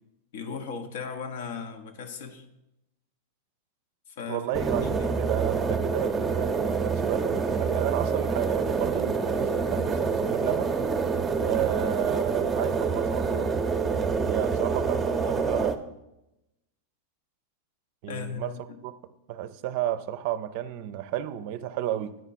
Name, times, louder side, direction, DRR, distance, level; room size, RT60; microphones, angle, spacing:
voice 1, 0.3-2.4 4.1-4.5 4.8-5.2 18.1-18.8, left 6 dB, 65° left, 6 dB, 1.0 m, -37 dB
voice 2, 4.3-4.8 5.2-10.7 11.4-13.5 14.3-15.8 18.0-18.5 18.8-18.9 19.3-22.2, right 12 dB, 55° right, 13 dB, 0.5 m, -32 dB
sound 1, 4.5-15.8, right 5 dB, 20° right, 0.7 m, -27 dB
9.4 x 4.5 x 4.2 m, 0.90 s
hypercardioid pair, 100°, 0 cm